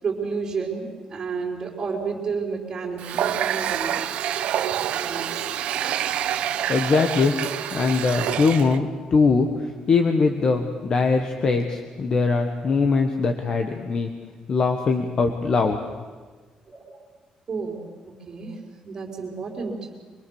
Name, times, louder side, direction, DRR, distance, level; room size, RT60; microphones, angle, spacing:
voice 1, 0.0-4.0 4.9-5.5 16.7-17.0 17.5-17.8 18.3-18.6 18.8-19.7, right 5 dB, 30° right, -5 dB, 3.8 m, -31 dB
Water tap faucet, 3.0-8.8, right 10 dB, 70° right, 1.0 m, -27 dB
voice 2, 6.7-7.3 7.7-9.5 9.9-14.1 14.5-15.8, left 4 dB, 35° left, 5 dB, 1.3 m, -21 dB
24.5 x 22.5 x 7.1 m, 1.4 s
cardioid pair, 180°, 2 cm